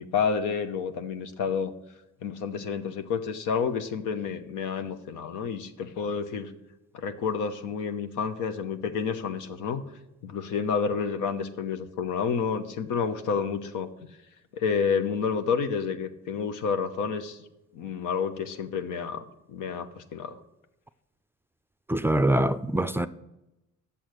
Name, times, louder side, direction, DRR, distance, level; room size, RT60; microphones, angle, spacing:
voice 1, 0.0-1.7 2.2-6.5 6.9-9.8 10.2-13.9 14.5-17.4 17.7-20.4, left 6 dB, 90° left, 0.9 m, -29 dB
voice 2, 21.9-23.1, right 1 dB, 10° right, 0.4 m, -24 dB
8.7 x 7.1 x 6.4 m
cardioid pair, 90°, 30 cm